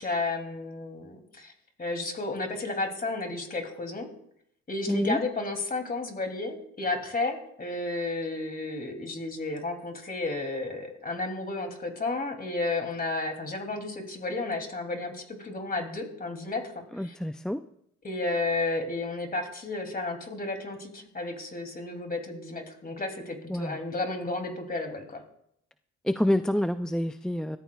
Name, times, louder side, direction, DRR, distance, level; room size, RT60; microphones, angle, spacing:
voice 1, 0.0-1.5 1.8-4.1 4.7-17.2 18.0-25.2, left 2 dB, 30° left, 4 dB, 2.7 m, -32 dB
voice 2, 4.9-5.2 16.9-17.6 23.5-23.8 26.0-27.6, left 1 dB, ahead, 10 dB, 0.3 m, -27 dB
20.0 x 14.5 x 2.3 m, 0.73 s
cardioid pair, 90°, 30 cm